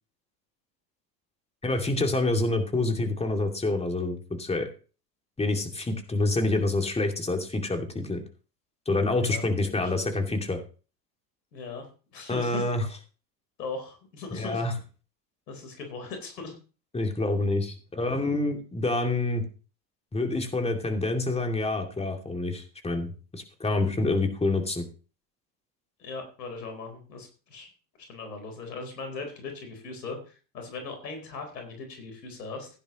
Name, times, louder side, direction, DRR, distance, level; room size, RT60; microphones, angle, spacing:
voice 1, 1.6-4.7 5.4-8.2 8.9-10.6 12.3-12.8 14.3-14.7 16.9-19.4 20.1-24.8, left 2 dB, 10° left, 4 dB, 2.5 m, -27 dB
voice 2, 9.1-9.4 9.7-10.1 11.5-12.7 13.6-14.6 15.5-16.6 26.0-27.7 28.0-32.7, left 4 dB, 80° left, 5 dB, 4.2 m, -39 dB
16.0 x 10.0 x 3.1 m, 0.36 s
hypercardioid pair, 80°, 49 cm